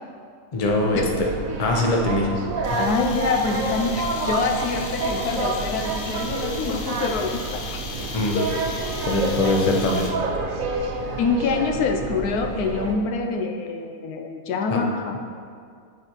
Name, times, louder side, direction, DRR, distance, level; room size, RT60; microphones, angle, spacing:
voice 1, 0.5-1.3 1.6-2.3 2.7-2.8 8.1-8.4 9.0-10.1 14.7-14.8, left 2 dB, 30° left, 0 dB, 0.7 m, -22 dB
sound 1, 0.6-12.9, right 3 dB, 65° right, 1.1 m, -29 dB
sound 2, 2.6-10.4, left 4 dB, 60° left, 1.0 m, -37 dB
voice 2, 2.8-7.8 8.3-8.5 9.4-9.5 11.2-15.2, left 4 dB, 85° left, 3 dB, 1.2 m, -26 dB
Wind instrument woodwind instrument, 8.3-12.7, right 4 dB, 85° right, 1.5 m, -41 dB
8.4 x 5.0 x 4.5 m, 2.2 s
omnidirectional pair, 1.6 m